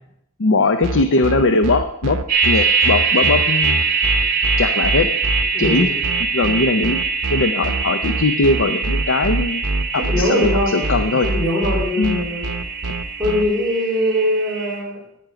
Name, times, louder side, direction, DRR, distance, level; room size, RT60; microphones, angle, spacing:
voice 1, 0.4-2.2 2.4-3.8 4.6-5.1 5.6-5.9 6.3-7.0 7.3-9.6 9.9-11.3 12.0-12.2, left 3 dB, 55° left, 8 dB, 0.6 m, -19 dB
sound 1, 0.8-13.4, right 2 dB, 85° right, 0.8 m, -24 dB
sound 2, 2.3-14.8, right 4 dB, 35° right, 2.6 m, -23 dB
voice 2, 5.5-6.0 9.9-12.5 13.2-15.0, left 1 dB, ahead, -10 dB, 3.6 m, -22 dB
10.5 x 9.3 x 5.0 m, 0.77 s
head